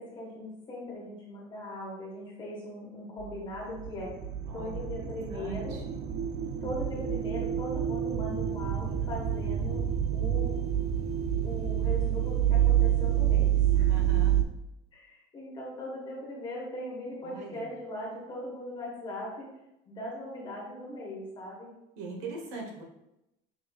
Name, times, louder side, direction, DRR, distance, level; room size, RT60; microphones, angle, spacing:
voice 1, 0.0-4.1 4.5-5.8 6.6-9.8 10.1-10.6 11.4-13.9 14.9-19.5 19.8-21.7, left 1 dB, 30° left, -4 dB, 1.4 m, -39 dB
sound 1, 3.2-14.4, right 10 dB, 40° right, 0.4 m, -28 dB
voice 2, 4.4-6.0 13.9-14.4 17.2-17.7 22.0-22.8, right 3 dB, 90° right, -1 dB, 1.2 m, -42 dB
5.6 x 3.0 x 2.4 m, 0.88 s
cardioid pair, 160°, 17 cm